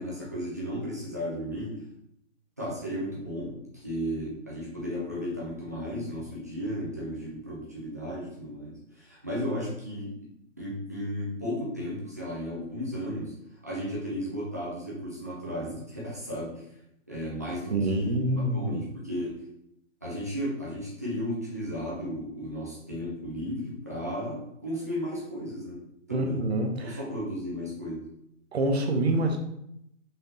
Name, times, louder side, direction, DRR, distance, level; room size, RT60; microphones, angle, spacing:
voice 1, 0.0-1.8 2.6-10.1 10.6-13.3 13.6-16.6 17.1-18.2 18.5-19.4 20.0-25.8 26.1-26.4 26.8-28.0, equal, 15° right, -7 dB, 0.5 m, -34 dB
voice 2, 17.7-18.8 26.1-27.0 28.5-29.4, right 1 dB, 55° right, 4 dB, 0.9 m, -26 dB
5.7 x 3.4 x 2.7 m, 0.77 s
hypercardioid pair, 165°, 39 cm